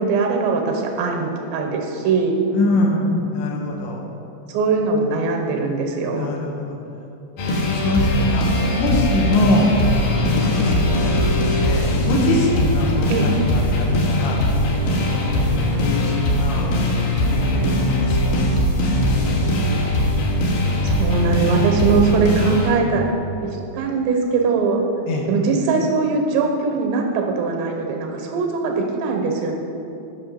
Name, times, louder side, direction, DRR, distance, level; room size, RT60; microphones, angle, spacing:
voice 1, 0.0-2.4 4.5-6.3 13.1-13.3 20.8-23.1 23.7-24.8 25.3-29.6, right 4 dB, 85° right, 2 dB, 3.2 m, -21 dB
voice 2, 2.5-4.0 6.1-6.6 7.4-8.5 8.8-9.7 10.0-11.3 11.6-14.4 14.9-16.7 17.5-18.7 25.1-25.3, left 2 dB, 80° left, -1 dB, 3.4 m, -24 dB
sound 1, 7.4-22.7, left 1 dB, 60° left, 2.5 m, -20 dB
8.7 x 6.4 x 5.6 m, 2.9 s
omnidirectional pair, 5.2 m